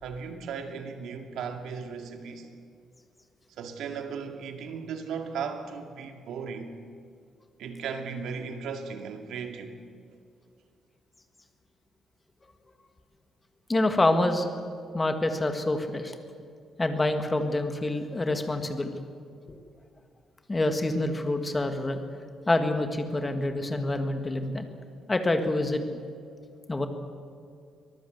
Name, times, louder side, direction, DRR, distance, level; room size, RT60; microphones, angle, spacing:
voice 1, 0.0-2.5 3.6-6.7 7.6-9.8, right 6 dB, 80° right, 5 dB, 2.4 m, -36 dB
voice 2, 13.7-14.5 14.9-16.1 16.8-18.9 19.5-19.6 20.5-22.0 22.5-24.7 25.1-25.8 26.7-26.9, left 2 dB, 15° left, 6 dB, 1.8 m, -26 dB
24.5 x 19.0 x 8.0 m, 2.3 s
cardioid pair, 165°, 0 cm